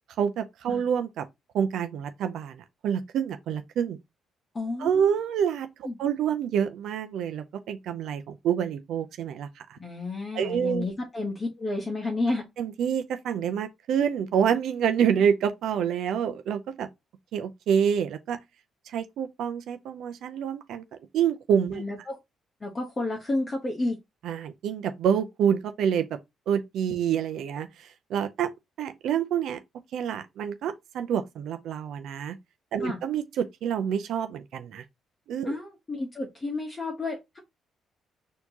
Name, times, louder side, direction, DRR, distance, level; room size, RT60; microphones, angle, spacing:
voice 1, 0.2-1.3 1.5-4.0 4.8-9.8 10.3-10.9 12.6-16.9 17.3-18.4 18.9-20.8 21.1-21.8 24.2-26.2 26.5-28.5 28.8-29.6 29.9-32.4 32.7-34.8 35.3-35.6, right 8 dB, 75° right, 0.5 m, -27 dB
voice 2, 4.5-5.0 5.8-6.0 9.8-12.5 21.7-22.2 22.6-24.0 32.8-33.0 35.4-37.4, left 2 dB, 25° left, 1.1 m, -31 dB
4.4 x 2.8 x 2.8 m
cardioid pair, 90°, 0 cm